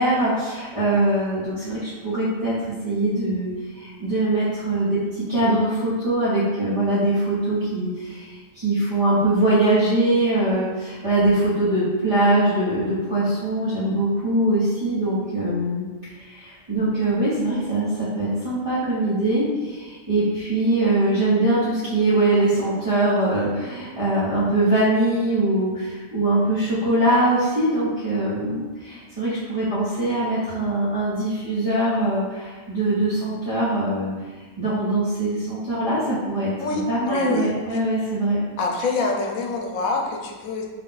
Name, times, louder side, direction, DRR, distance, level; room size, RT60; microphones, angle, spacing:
voice 1, 0.0-2.5 2.8-15.9 16.2-34.1 34.4-38.4, right 1 dB, 30° right, -13 dB, 0.9 m, -22 dB
voice 2, 36.6-37.8 38.6-40.7, left 3 dB, 85° left, 0 dB, 1.1 m, -26 dB
3.8 x 2.4 x 3.8 m, 1.4 s
omnidirectional pair, 1.4 m